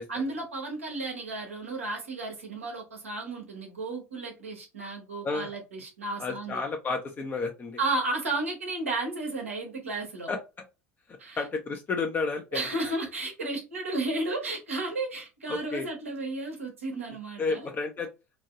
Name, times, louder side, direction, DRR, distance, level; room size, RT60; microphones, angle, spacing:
voice 1, 0.1-6.6 7.8-10.3 11.2-11.4 12.5-17.7, right 2 dB, 80° right, 1.2 m, -33 dB
voice 2, 6.2-7.8 10.3-10.4 11.4-12.6 15.5-15.9 17.4-18.1, left 4 dB, 25° left, 0.7 m, -31 dB
3.0 x 2.7 x 2.4 m
figure-of-eight pair, 70°, 7 cm